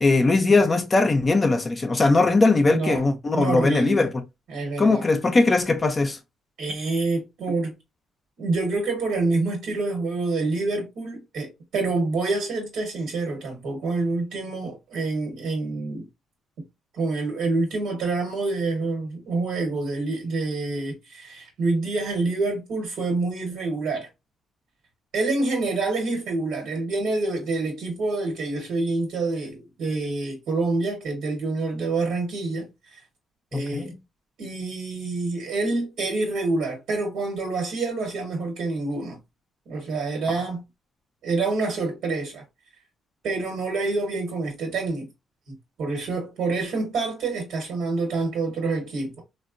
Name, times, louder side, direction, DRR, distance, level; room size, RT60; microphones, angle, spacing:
voice 1, 0.0-4.2 4.8-6.2 33.5-33.9, left 3 dB, 30° left, 0.4 m, -20 dB
voice 2, 2.7-3.1 3.3-4.0 4.5-5.0 6.6-7.7 8.4-16.1 16.9-24.1 25.1-33.0 33.5-33.9 34.4-39.2 39.7-40.6 41.2-42.4 43.2-45.1 45.8-49.2, right 3 dB, 80° right, 1.2 m, -27 dB
3.4 x 2.1 x 2.4 m
cardioid pair, 90°, 0 cm